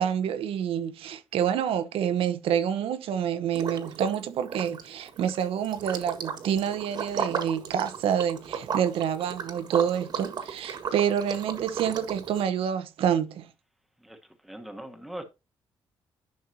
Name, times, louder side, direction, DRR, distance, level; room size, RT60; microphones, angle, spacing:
voice 1, 0.0-13.5, right 9 dB, 85° right, 1.0 m, -27 dB
Liquid, 3.5-4.2 4.5-12.4, right 7 dB, 50° right, 1.6 m, -35 dB
voice 2, 14.4-15.2, right 1 dB, ahead, 1.2 m, -40 dB
11.0 x 6.4 x 2.8 m
cardioid pair, 170°, 9 cm